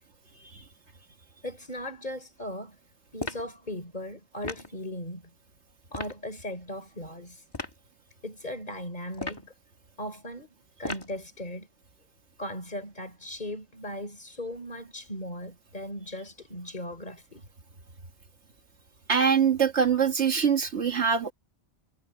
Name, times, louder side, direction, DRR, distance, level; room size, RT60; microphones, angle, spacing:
voice 1, 1.4-2.8 3.1-5.3 5.9-7.4 8.2-9.5 10.0-11.7 12.4-17.4, left 1 dB, 40° left, 3.9 m, -38 dB
sound 1, 3.2-3.5 4.4-4.7 5.9-6.2 7.5-7.8 9.1-9.5 10.8-11.2, left 2 dB, 20° left, 1.5 m, -36 dB
voice 2, 19.1-21.3, right 7 dB, 70° right, 1.9 m, -23 dB
omnidirectional pair, 1.2 m